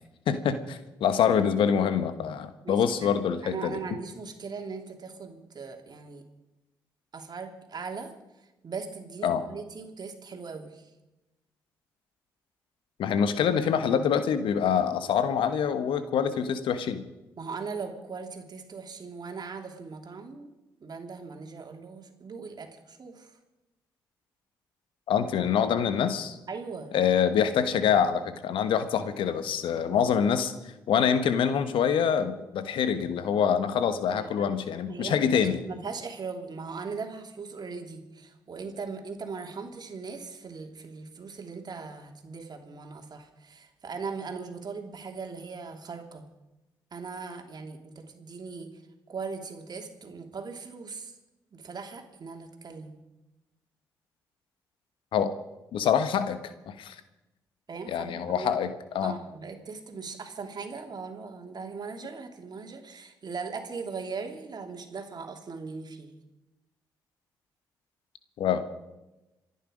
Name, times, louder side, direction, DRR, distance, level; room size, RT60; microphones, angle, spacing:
voice 1, 0.3-3.8 9.2-9.4 13.0-17.0 25.1-26.4 26.9-30.5 30.9-35.6 55.1-55.3 55.7-56.9 57.9-58.7 58.9-59.1 68.4-68.6, left 7 dB, 75° left, 11 dB, 1.3 m, -25 dB
voice 2, 2.6-3.1 3.4-6.2 7.1-8.1 8.6-10.9 17.4-20.5 20.8-23.4 26.5-26.9 34.1-34.5 34.9-46.3 46.9-48.8 49.1-51.1 51.5-53.0 57.7-58.6 59.0-66.2, right 4 dB, 50° right, 4 dB, 3.0 m, -39 dB
27.0 x 10.0 x 5.2 m, 0.99 s
hypercardioid pair, 45°, 9 cm